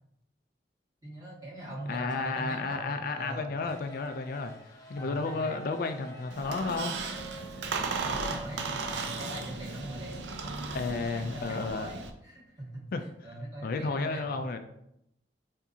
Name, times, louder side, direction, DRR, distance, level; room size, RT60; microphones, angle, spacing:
voice 1, 1.0-3.5 4.9-5.6 8.1-12.9 13.2-14.5, right 1 dB, 20° right, -6 dB, 1.8 m, -42 dB
voice 2, 1.9-7.0 10.7-11.9 12.9-13.0 13.6-14.6, left 3 dB, 55° left, 7 dB, 0.4 m, -32 dB
sound 1, 3.6-11.7, right 1 dB, 20° left, 0.9 m, -48 dB
Squeak, 6.3-12.1, right 4 dB, 85° right, 0.5 m, -36 dB
7.1 x 2.7 x 2.7 m, 0.79 s
head